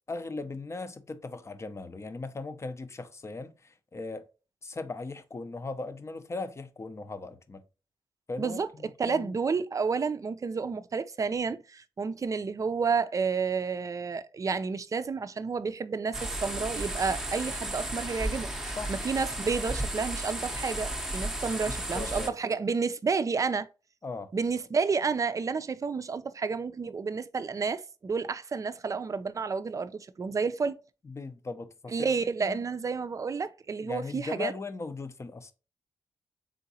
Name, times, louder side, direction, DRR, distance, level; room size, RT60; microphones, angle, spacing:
voice 1, 0.1-4.3 4.6-7.6 8.3-9.4 18.6-19.0 21.5-22.4 24.0-24.3 31.0-32.7 33.8-35.5, left 3 dB, 30° left, 0.6 m, -38 dB
voice 2, 9.0-23.7 24.3-30.8 31.9-34.5, right 5 dB, 40° right, 0.4 m, -30 dB
sound 1, 16.1-22.3, right 1 dB, 5° right, 0.7 m, -34 dB
3.7 x 3.7 x 2.8 m
cardioid pair, 70°, 9 cm